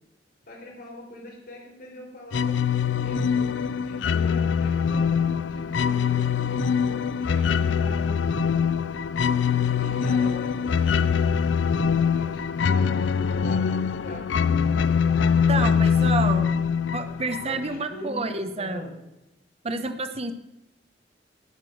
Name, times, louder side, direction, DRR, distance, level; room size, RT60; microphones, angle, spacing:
voice 1, 0.5-2.6 3.0-6.3 6.8-8.5 9.7-11.0 12.0-16.3 17.4-18.2 18.5-18.9, left 1 dB, 55° left, -1 dB, 4.1 m, -42 dB
sound 1, 2.3-17.8, left 6 dB, 85° left, 0.4 m, -23 dB
voice 2, 15.5-16.5 16.9-18.9 19.6-20.3, right 3 dB, 35° right, 8 dB, 1.0 m, -29 dB
12.5 x 9.2 x 6.3 m, 0.92 s
head